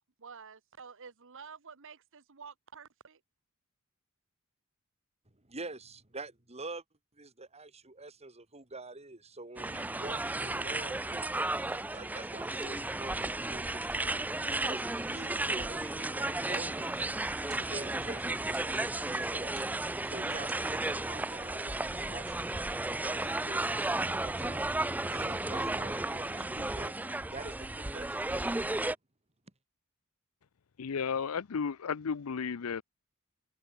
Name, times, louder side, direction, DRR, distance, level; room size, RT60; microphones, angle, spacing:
voice 1, 0.2-3.2, right 6 dB, 60° right, 1.2 m, -50 dB
voice 2, 5.3-6.8 7.1-14.2 14.6-17.1 17.5-19.7 20.0-22.6 22.9-24.7 25.1-26.9 27.3-28.2, right 2 dB, 30° right, 3.1 m, -46 dB
sound 1, 9.6-29.0, right 2 dB, 10° right, 0.4 m, -34 dB
sound 2, 13.0-13.1 13.5-13.7 14.5-14.6 15.5-15.7 16.5-17.1 17.5-17.8 18.5-18.8 19.5-20.0 20.5-20.6, right 12 dB, 80° right, 2.9 m, -54 dB
voice 3, 30.8-32.8, left 6 dB, 75° left, 0.6 m, -33 dB
head